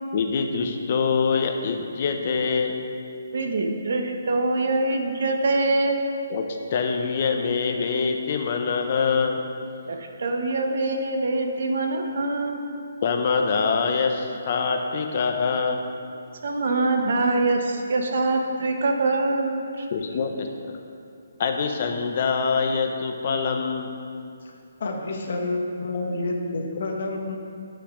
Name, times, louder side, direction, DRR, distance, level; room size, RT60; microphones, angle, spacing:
voice 1, 0.1-2.8 6.3-9.4 13.0-15.8 19.9-20.8 21.4-23.9, left 5 dB, 40° left, 4 dB, 0.8 m, -24 dB
voice 2, 3.3-6.0 9.9-12.6 16.4-19.9, right 2 dB, 60° right, 3 dB, 1.2 m, -24 dB
voice 3, 24.4-27.4, left 2 dB, 55° left, 2 dB, 1.4 m, -29 dB
12.0 x 5.7 x 5.1 m, 2.4 s
hypercardioid pair, 165°, 0 cm